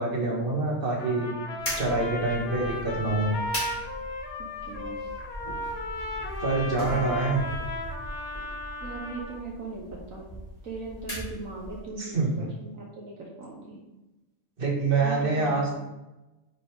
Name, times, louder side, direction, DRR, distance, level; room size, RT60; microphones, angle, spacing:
voice 1, 0.0-1.3 1.8-3.3 6.4-7.4 12.0-12.4 14.6-15.8, right 3 dB, 40° right, -3 dB, 2.1 m, -26 dB
Trumpet, 1.0-9.4, left 2 dB, 55° left, 1.2 m, -35 dB
sound 1, 1.6-11.9, equal, 25° left, 3.0 m, -39 dB
voice 2, 4.4-5.1 6.8-6.9 7.3-7.5 8.8-10.2 10.6-13.8 15.0-15.8, right 3 dB, 70° right, -2 dB, 1.7 m, -39 dB
9.5 x 5.2 x 3.6 m, 1.0 s
omnidirectional pair, 1.5 m